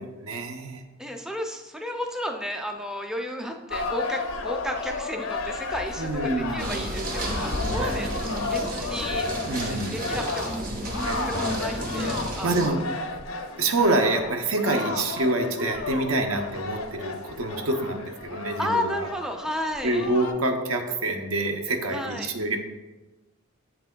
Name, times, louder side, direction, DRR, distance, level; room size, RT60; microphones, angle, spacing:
voice 1, 0.0-0.8 6.0-6.8 7.7-7.9 9.5-10.0 11.0-11.5 12.4-12.8 13.6-19.1 19.8-22.6, right 2 dB, 80° right, 4 dB, 0.7 m, -27 dB
voice 2, 1.0-9.3 9.6-13.0 14.7-14.9 18.6-20.1 21.9-22.3, equal, 5° right, 3 dB, 0.4 m, -33 dB
sound 1, 3.7-20.3, left 3 dB, 80° left, 0.6 m, -33 dB
sound 2, 6.6-12.7, right 1 dB, 40° right, 0.9 m, -32 dB
7.6 x 5.8 x 2.2 m, 1.1 s
head